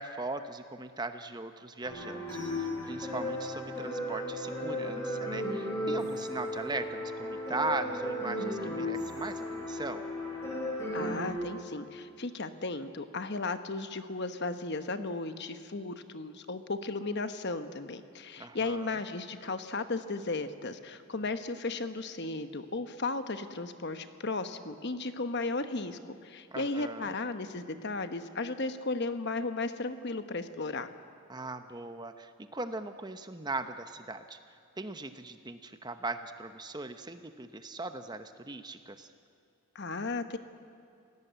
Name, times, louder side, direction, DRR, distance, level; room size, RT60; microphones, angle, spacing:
voice 1, 0.0-10.0 18.4-18.9 26.5-27.1 31.3-34.4 34.8-39.1, right 3 dB, 20° right, 9 dB, 0.9 m, -39 dB
sound 1, 1.8-11.3, left 1 dB, 10° left, 7.7 m, -35 dB
voice 2, 10.9-30.9 39.7-40.4, left 3 dB, 50° left, 9 dB, 1.1 m, -35 dB
28.0 x 17.5 x 8.1 m, 2.6 s
head